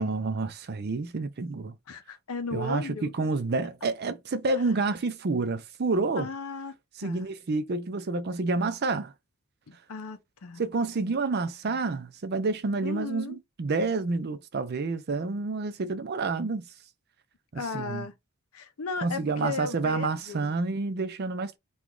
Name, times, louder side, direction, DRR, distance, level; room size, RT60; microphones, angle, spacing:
voice 1, 0.0-1.7 2.5-6.3 7.0-9.1 10.6-16.6 17.5-18.1 19.0-21.6, right 3 dB, 45° right, 0.4 m, -29 dB
voice 2, 1.9-3.1 6.2-6.7 7.0-7.3 9.7-10.6 11.7-11.8 12.8-13.4 17.5-18.1 18.5-20.5, left 4 dB, 75° left, 0.6 m, -36 dB
2.9 x 2.4 x 3.7 m
head